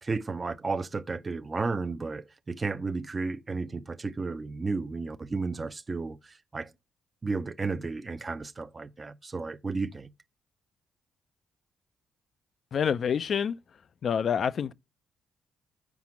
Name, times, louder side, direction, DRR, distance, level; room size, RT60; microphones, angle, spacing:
voice 1, 0.0-6.7 7.2-10.1, right 4 dB, 25° right, 0.5 m, -33 dB
voice 2, 12.7-13.6 14.0-14.7, left 7 dB, 55° left, 0.4 m, -27 dB
5.9 x 4.8 x 5.9 m
cardioid pair, 90°, 0 cm